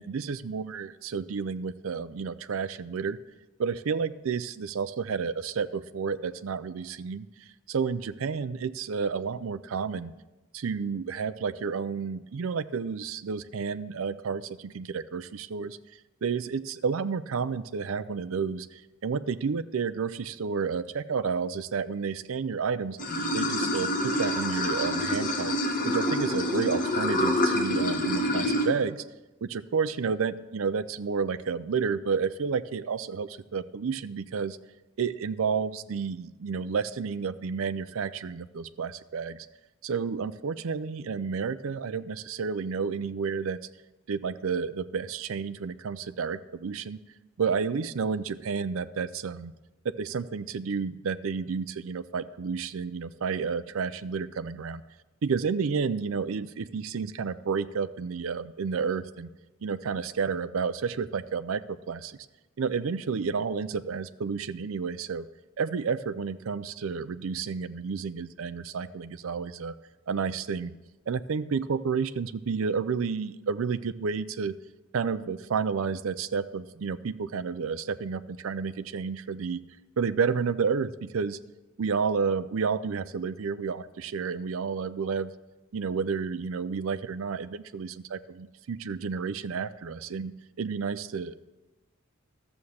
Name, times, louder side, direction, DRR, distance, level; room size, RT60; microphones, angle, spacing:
voice 1, 0.0-3.2 3.6-10.1 10.5-15.8 16.2-23.0 23.3-25.6 25.8-29.0 29.4-34.6 35.0-39.5 39.8-43.6 44.1-47.0 47.4-49.5 50.0-54.8 55.2-59.3 59.6-62.2 62.6-65.3 65.6-69.7 70.1-70.7 71.1-74.5 74.9-79.6 80.0-81.4 81.8-85.3 85.7-91.4, right 5 dB, 70° right, 12 dB, 0.5 m, -31 dB
Water / Sink (filling or washing), 23.0-28.7, left 1 dB, 40° left, 1.6 m, -27 dB
13.0 x 7.1 x 6.4 m, 1.1 s
head